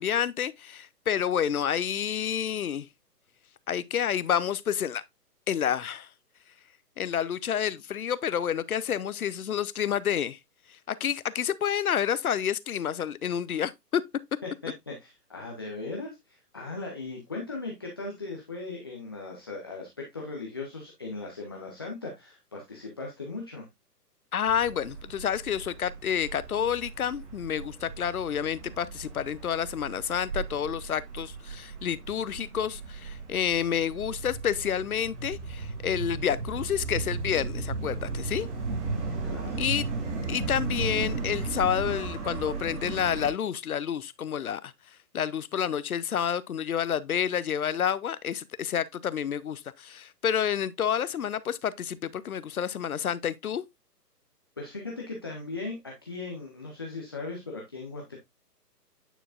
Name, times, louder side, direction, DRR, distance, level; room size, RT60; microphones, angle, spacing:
voice 1, 0.0-2.9 3.7-5.0 5.5-6.1 7.0-10.4 10.9-14.0 24.3-38.5 39.6-39.8 40.3-44.7 45.1-53.6, left 9 dB, 65° left, 0.6 m, -29 dB
voice 2, 14.4-23.7 38.7-39.7 54.6-58.2, left 3 dB, 15° left, 0.5 m, -38 dB
sound 1, 24.4-43.3, right 4 dB, 45° right, 2.2 m, -36 dB
9.0 x 4.6 x 2.4 m
figure-of-eight pair, 130°, 48 cm